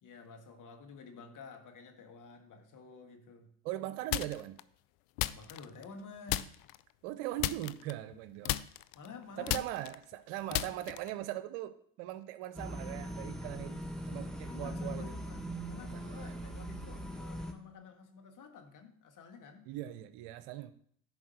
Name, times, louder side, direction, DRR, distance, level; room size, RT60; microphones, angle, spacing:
voice 1, 0.0-3.5 5.3-6.6 8.9-9.6 14.4-19.7, left 5 dB, 55° left, 5 dB, 1.9 m, -51 dB
voice 2, 3.6-4.6 7.0-8.6 9.4-15.2 15.9-16.5 19.7-20.7, right 14 dB, 75° right, 13 dB, 0.7 m, -40 dB
sound 1, 4.1-4.6 5.2-6.0 6.3-6.8 7.4-8.2 8.4-11.2, left 17 dB, 70° left, 0.5 m, -35 dB
sound 2, 12.5-17.5, equal, ahead, 1.4 m, -41 dB
10.5 x 4.8 x 6.4 m, 0.64 s
hypercardioid pair, 50°, 38 cm